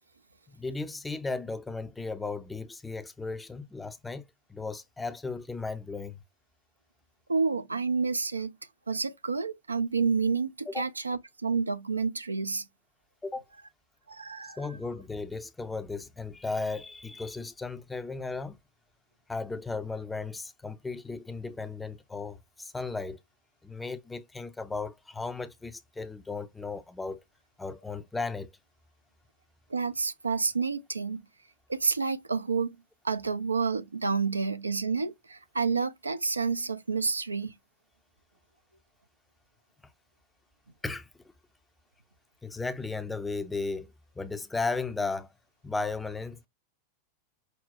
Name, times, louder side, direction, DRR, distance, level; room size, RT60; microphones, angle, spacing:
voice 1, 0.5-4.2 4.5-6.2 10.7-10.9 13.2-13.4 14.6-18.6 19.3-23.2 23.6-27.2 27.6-28.5 40.8-41.1 42.4-45.3 45.6-46.5, left 3 dB, 10° left, 0.5 m, -35 dB
voice 2, 7.3-8.5 8.9-12.7 14.1-14.6 29.7-31.2 31.7-32.8 33.0-37.5, right 4 dB, 80° right, 0.4 m, -29 dB
5.5 x 2.0 x 2.5 m
figure-of-eight pair, 90°, 0 cm